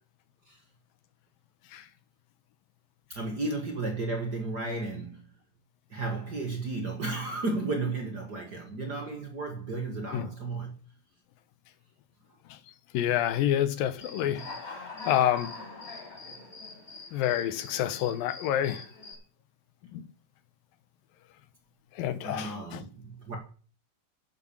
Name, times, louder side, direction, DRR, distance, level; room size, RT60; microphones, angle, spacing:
voice 1, 3.1-5.2 5.9-10.7 14.2-14.5 22.2-23.4, right 3 dB, 35° right, 1.8 m, -33 dB
voice 2, 12.9-14.4 15.1-15.5 17.1-18.8 19.9-20.0 22.0-22.8, left 11 dB, 85° left, 2.7 m, -28 dB
Human voice / Cricket, 14.0-19.1, left 3 dB, 25° left, 5.5 m, -43 dB
11.0 x 8.2 x 7.2 m
omnidirectional pair, 4.0 m